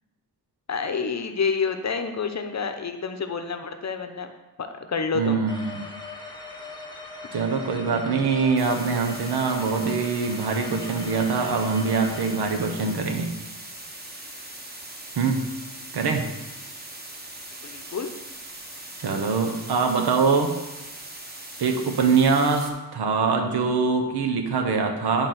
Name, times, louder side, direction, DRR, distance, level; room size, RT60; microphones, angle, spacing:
voice 1, 0.7-4.3 4.6-5.4 17.6-18.1, left 5 dB, 45° left, 6 dB, 0.8 m, -28 dB
voice 2, 5.1-5.8 7.3-13.4 15.2-15.5 15.9-16.3 19.0-20.5 21.6-25.3, right 5 dB, 85° right, 4 dB, 1.1 m, -23 dB
sound 1, 5.5-13.0, left 3 dB, 10° left, 1.1 m, -40 dB
sound 2, 8.6-22.7, right 1 dB, 25° right, 1.3 m, -40 dB
10.0 x 3.6 x 5.8 m, 1.1 s
wide cardioid pair, 110°, 38 cm